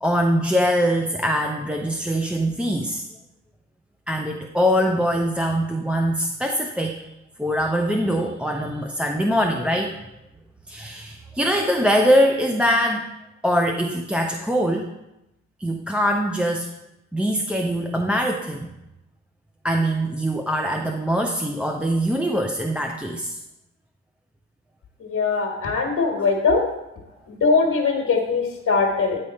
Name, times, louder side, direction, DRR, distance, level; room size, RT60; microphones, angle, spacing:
voice 1, 0.0-3.0 4.1-7.1 7.4-10.0 10.7-13.1 13.4-14.9 15.6-16.7 17.1-18.7 19.6-23.4 26.2-26.3, equal, 5° right, 2 dB, 0.4 m, -22 dB
voice 2, 25.0-26.6 27.3-29.2, left 4 dB, 50° left, 0 dB, 1.4 m, -21 dB
9.5 x 3.5 x 4.1 m, 0.91 s
cardioid pair, 90°, 30 cm